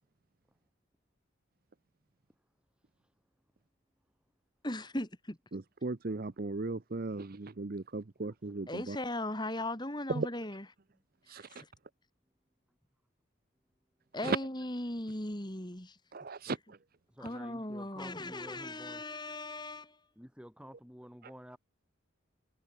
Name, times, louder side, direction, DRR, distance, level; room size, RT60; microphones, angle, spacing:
voice 1, 4.6-5.4 8.7-10.7 11.3-11.7 14.1-16.0 17.2-20.0, left 1 dB, 20° left, 2.9 m, -38 dB
voice 2, 5.5-9.0 10.2-10.3 11.3-11.5 14.2-14.4 16.1-16.6, right 3 dB, 45° right, 0.7 m, -36 dB
voice 3, 8.2-8.8 10.9-11.0 16.5-16.6 17.1-19.0 20.2-21.6, equal, 5° right, 7.1 m, -51 dB
head